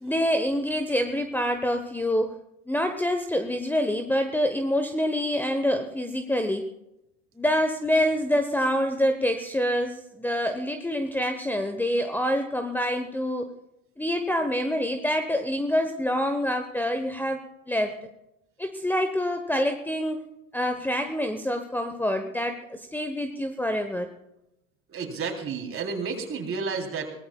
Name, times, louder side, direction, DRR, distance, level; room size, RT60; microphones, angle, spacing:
voice 1, 0.0-2.3 2.7-6.6 7.4-13.5 14.0-17.9 18.6-20.2 20.5-24.1, equal, 5° left, 7 dB, 1.1 m, -26 dB
voice 2, 24.9-27.1, right 5 dB, 35° right, 2 dB, 3.6 m, -31 dB
23.0 x 18.5 x 2.4 m, 0.88 s
figure-of-eight pair, 70°, 39 cm